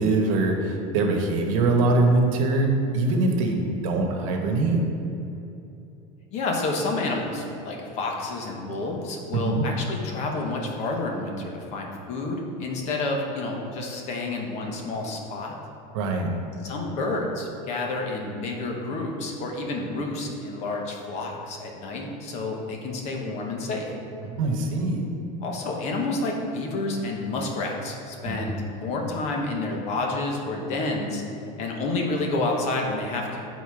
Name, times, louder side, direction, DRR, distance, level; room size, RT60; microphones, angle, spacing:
voice 1, 0.0-4.8 9.3-9.6 15.9-16.3 24.2-25.1 28.2-28.4, right 2 dB, 80° right, 2 dB, 1.1 m, -23 dB
voice 2, 6.3-15.5 16.6-23.9 25.4-31.2 31.6-33.4, left 2 dB, 40° left, 1 dB, 1.0 m, -29 dB
9.3 x 4.1 x 4.8 m, 2.8 s
cardioid pair, 160°, 17 cm